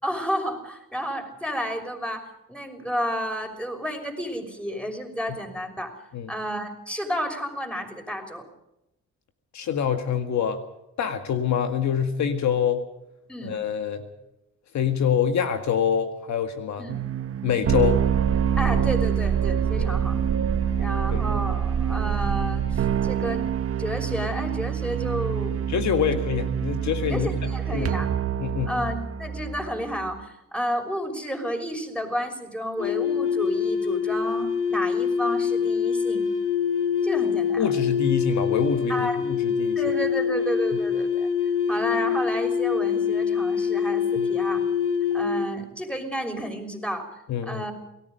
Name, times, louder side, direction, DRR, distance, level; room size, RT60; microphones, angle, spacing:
voice 1, 0.0-6.0 6.3-8.5 13.3-13.5 16.8-17.0 18.6-20.2 20.8-23.4 23.8-25.6 27.1-28.1 28.7-36.3 37.0-37.8 38.9-39.2 39.8-41.3 41.7-44.6 45.1-47.1 47.4-47.7, equal, 5° left, 4 dB, 6.1 m, -31 dB
voice 2, 9.5-10.6 11.0-12.8 13.4-14.0 14.7-16.8 17.4-18.0 19.8-19.9 21.1-21.2 25.7-28.0 28.4-28.7 37.6-39.8 44.2-44.3 47.3-47.6, left 8 dB, 70° left, 8 dB, 2.0 m, -25 dB
sound 1, 16.9-30.2, right 8 dB, 50° right, 1.3 m, -26 dB
sound 2, 32.8-45.5, left 6 dB, 45° left, 2.2 m, -25 dB
28.5 x 19.0 x 5.3 m, 0.88 s
cardioid pair, 90°, 30 cm